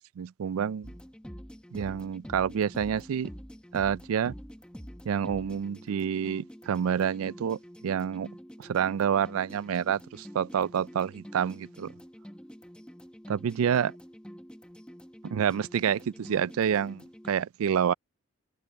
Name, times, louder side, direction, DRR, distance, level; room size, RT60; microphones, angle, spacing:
voice 1, 0.2-0.9 1.7-3.3 3.7-4.3 5.1-8.3 8.6-11.9 13.3-13.9 15.2-17.9, right 8 dB, 90° right, 0.4 m, -28 dB
sound 1, 0.8-17.3, equal, 5° left, 1.0 m, -47 dB
open air
head